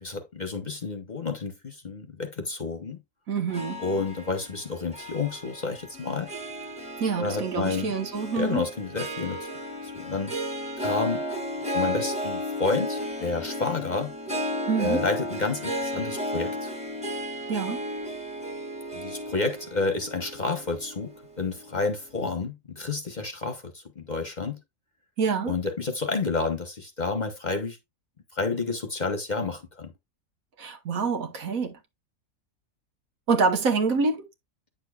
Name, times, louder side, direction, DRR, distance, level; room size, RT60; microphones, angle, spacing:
voice 1, 0.0-3.0 3.8-6.3 7.2-7.9 8.3-9.5 9.8-10.3 10.8-11.2 11.7-14.1 14.8-16.7 18.9-24.6 25.4-27.8 28.3-29.9, left 3 dB, 35° left, 1.0 m, -30 dB
voice 2, 3.3-3.8 7.0-8.6 14.7-15.0 17.5-17.8 25.2-25.5 30.6-31.8 33.3-34.2, right 5 dB, 75° right, 1.6 m, -26 dB
Harp, 3.5-21.9, equal, 5° right, 1.3 m, -34 dB
9.2 x 6.7 x 2.3 m
omnidirectional pair, 1.5 m